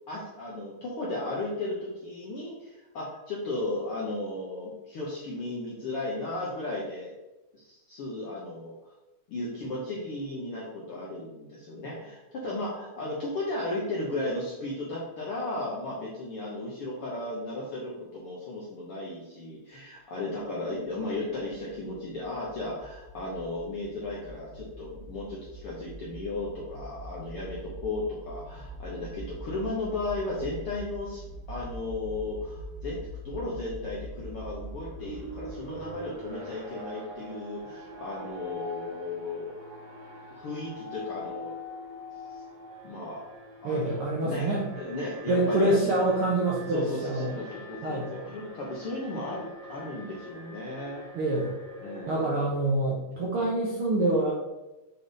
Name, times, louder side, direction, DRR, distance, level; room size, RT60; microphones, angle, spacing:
voice 1, 0.1-7.1 7.5-8.8 9.3-31.2 31.5-33.0 33.2-39.6 40.3-41.5 42.8-43.2 43.6-45.9 46.7-51.1 51.3-51.5 51.8-52.4, left 2 dB, 65° left, -5 dB, 1.4 m, -35 dB
sound 1, 20.8-36.1, equal, 85° right, 2.2 m, -43 dB
Alarm, 34.3-52.2, equal, 45° right, 1.0 m, -44 dB
voice 2, 43.6-44.6 45.3-47.3 47.8-48.1 51.1-51.5 52.1-54.3, right 2 dB, 65° right, -4 dB, 1.4 m, -26 dB
6.9 x 3.8 x 4.0 m, 1.0 s
omnidirectional pair, 3.9 m